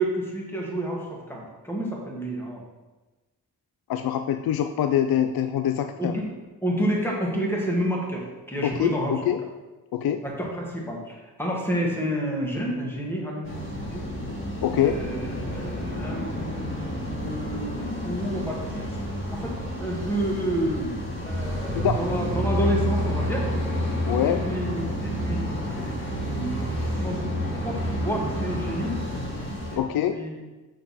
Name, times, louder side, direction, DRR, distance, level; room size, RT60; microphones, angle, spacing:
voice 1, 0.0-2.6 6.0-6.2 6.6-9.1 10.2-13.6 13.9-14.0 14.8-18.7 19.3-20.9 21.2-23.5 24.2-26.5 27.0-27.2 27.4-29.0 29.7-29.8 30.1-30.3, right 1 dB, 5° left, -2 dB, 1.6 m, -29 dB
voice 2, 3.9-6.2 8.6-9.4 9.9-10.2 14.6-15.0 21.7-22.0 24.1-24.4 25.7-25.8 29.8-30.2, left 10 dB, 70° left, 8 dB, 0.5 m, -24 dB
sound 1, 13.4-29.8, equal, 35° left, 1.8 m, -29 dB
6.7 x 6.5 x 4.2 m, 1.2 s
wide cardioid pair, 145°, 37 cm